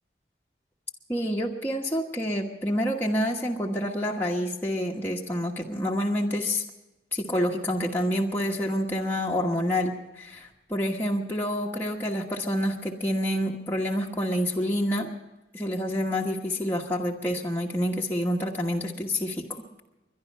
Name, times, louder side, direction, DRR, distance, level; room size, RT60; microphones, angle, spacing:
voice 1, 1.1-6.6 7.1-15.1 15.5-19.8, equal, 10° left, -2 dB, 1.2 m, -28 dB
22.0 x 11.5 x 5.5 m, 1.0 s
head